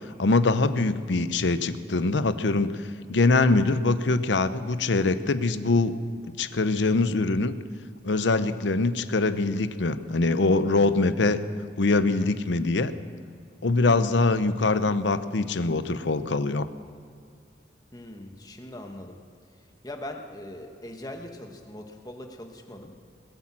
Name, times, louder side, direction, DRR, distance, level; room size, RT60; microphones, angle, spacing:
voice 1, 0.2-2.7 3.1-6.0 6.4-7.5 8.0-11.4 11.8-12.9 13.6-16.7, left 3 dB, 80° left, 12 dB, 0.7 m, -23 dB
voice 2, 17.9-19.2 19.8-22.9, left 1 dB, 20° left, 3 dB, 1.2 m, -41 dB
20.5 x 8.8 x 7.5 m, 2.4 s
head